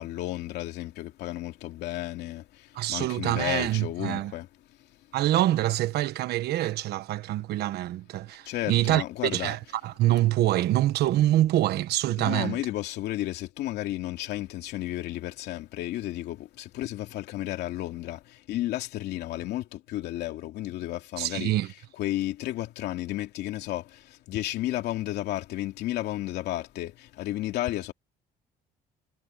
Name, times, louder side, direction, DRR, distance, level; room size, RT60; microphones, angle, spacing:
voice 1, 0.0-4.5 8.4-9.5 12.2-21.5 22.0-27.9, left 15 dB, 80° left, 2.8 m, -33 dB
voice 2, 2.7-4.3 5.1-12.6 21.2-21.7, right 14 dB, 75° right, 1.3 m, -25 dB
cardioid pair, 110°, 17 cm